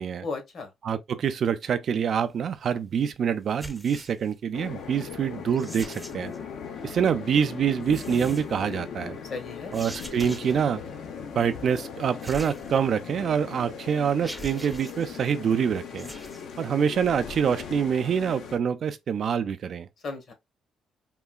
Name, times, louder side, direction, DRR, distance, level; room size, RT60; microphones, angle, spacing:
voice 1, 0.2-0.7 9.2-9.7 20.0-20.3, left 4 dB, 60° left, 1.1 m, -35 dB
voice 2, 0.8-6.3 6.8-9.2 9.7-10.8 11.4-16.1 16.6-19.9, right 7 dB, 60° right, 0.4 m, -26 dB
sound 1, 3.5-4.3 5.5-6.4 7.8-8.6 9.7-10.7 12.2-13.1 13.6-13.7 14.2-15.1 15.9-16.4, equal, ahead, 0.6 m, -43 dB
sound 2, 4.5-18.6, left 6 dB, 75° left, 0.7 m, -39 dB
3.7 x 2.3 x 2.3 m
cardioid pair, 90°, 0 cm